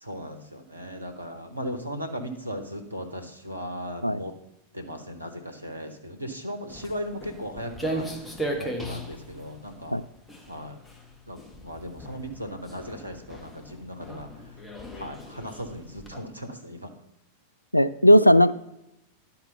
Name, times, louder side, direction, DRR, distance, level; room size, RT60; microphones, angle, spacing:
voice 1, 0.0-4.3 4.7-8.1 8.5-10.0 10.5-10.8 11.3-14.3 15.0-16.9, equal, 85° right, 5 dB, 1.0 m, -37 dB
Walk footsteps, 6.7-16.2, right 1 dB, 10° left, 1.2 m, -37 dB
voice 2, 17.7-18.5, equal, 90° left, 13 dB, 0.3 m, -16 dB
11.0 x 4.4 x 5.5 m, 0.86 s
figure-of-eight pair, 90°, 0 cm